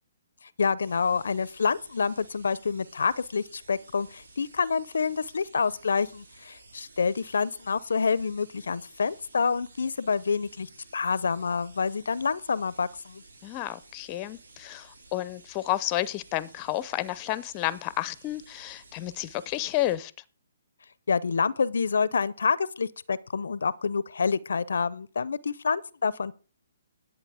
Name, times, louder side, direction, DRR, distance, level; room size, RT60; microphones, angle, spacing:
voice 1, 0.6-13.2 21.1-26.3, left 5 dB, 80° left, 0.5 m, -27 dB
sound 1, 0.8-20.0, right 3 dB, 85° right, 2.6 m, -54 dB
voice 2, 13.4-20.1, left 15 dB, 30° left, 0.6 m, -31 dB
11.0 x 8.4 x 4.9 m
hypercardioid pair, 145°, 0 cm